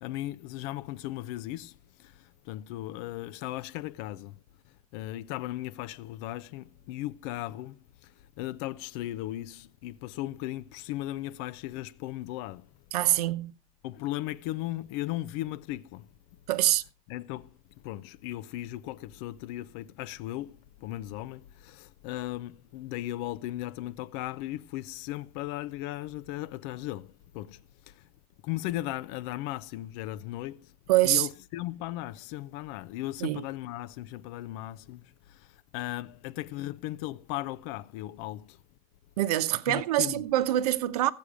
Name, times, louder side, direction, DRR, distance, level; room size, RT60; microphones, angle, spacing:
voice 1, 0.0-4.4 4.9-12.7 13.8-16.1 17.1-17.5 17.8-28.0 28.4-30.7 31.0-38.6 39.7-40.2, left 15 dB, 45° left, 0.6 m, -37 dB
voice 2, 12.9-13.5 16.5-16.8 30.9-31.3 33.2-33.4 39.2-41.1, right 14 dB, 75° right, 0.9 m, -25 dB
14.0 x 8.5 x 4.9 m
supercardioid pair, 165°, 20 cm